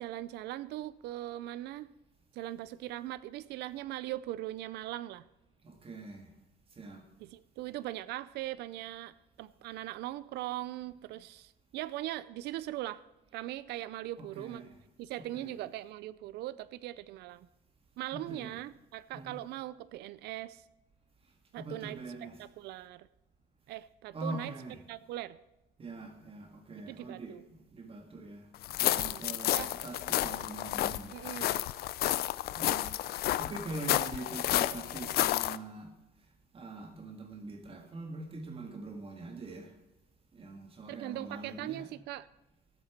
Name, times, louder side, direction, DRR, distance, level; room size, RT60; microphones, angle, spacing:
voice 1, 0.0-1.9 2.3-5.2 7.2-13.0 13.3-14.6 15.0-17.5 18.0-20.6 21.5-22.0 22.4-23.1 23.7-24.5 24.9-25.4 26.9-27.4 28.9-29.7 31.1-31.6 40.9-42.3, right 15 dB, 80° right, 17 dB, 0.5 m, -40 dB
voice 2, 5.6-6.3 6.7-7.1 14.2-14.7 15.3-15.5 18.1-18.5 19.1-19.4 21.6-22.4 24.1-24.8 25.8-31.1 32.6-35.9 36.5-39.7 40.3-41.9, right 2 dB, 35° right, 5 dB, 1.8 m, -43 dB
sound 1, 28.6-35.6, left 15 dB, 65° left, 0.5 m, -31 dB
14.0 x 8.3 x 5.9 m, 0.98 s
cardioid pair, 110°, 17 cm